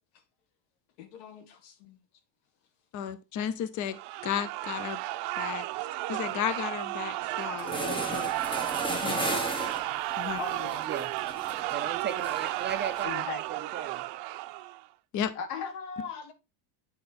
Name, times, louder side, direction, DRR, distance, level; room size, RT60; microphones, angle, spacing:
voice 1, 1.0-2.0 10.4-10.8 13.0-13.4 15.4-16.3, left 5 dB, 80° left, 1.8 m, -39 dB
voice 2, 2.9-5.0 5.4-5.7 6.1-8.3 8.9-9.4 10.2-10.4 15.1-15.3, left 9 dB, 35° left, 0.7 m, -34 dB
sound 1, 3.9-14.8, right 17 dB, 60° right, 0.8 m, -33 dB
sound 2, 7.2-7.3 7.6-13.0, right 1 dB, 10° left, 1.3 m, -36 dB
voice 3, 11.7-14.0, right 7 dB, 20° right, 0.5 m, -36 dB
8.8 x 4.6 x 4.2 m
cardioid pair, 140°, 49 cm